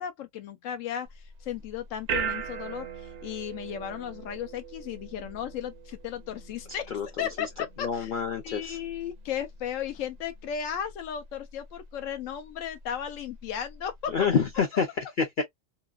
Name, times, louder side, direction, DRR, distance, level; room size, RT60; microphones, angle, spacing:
voice 1, 0.0-8.1 8.4-14.1, left 9 dB, 90° left, 1.0 m, -35 dB
sound 1, 1.1-14.6, right 6 dB, 70° right, 0.8 m, -41 dB
voice 2, 7.8-8.8 14.1-14.9 15.2-15.4, left 6 dB, 55° left, 0.6 m, -27 dB
2.8 x 2.2 x 2.3 m
omnidirectional pair, 1.3 m